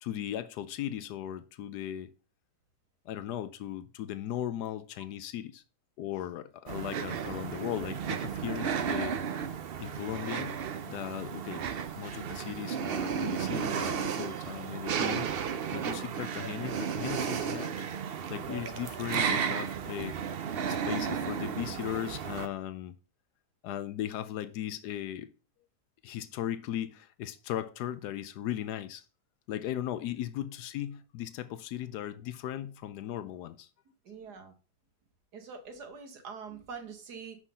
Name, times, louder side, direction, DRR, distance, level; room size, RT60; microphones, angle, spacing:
voice 1, 0.0-2.1 3.1-5.6 6.0-9.5 9.8-10.6 10.9-11.7 12.0-17.9 18.3-20.4 20.7-22.9 23.6-25.3 26.0-29.0 29.5-33.7, left 11 dB, 85° left, 1.2 m, -37 dB
sound 1, 6.7-22.5, right 7 dB, 55° right, 0.6 m, -33 dB
voice 2, 34.0-34.5 35.3-37.4, right 5 dB, 90° right, 2.0 m, -44 dB
6.3 x 5.8 x 5.5 m
omnidirectional pair, 1.7 m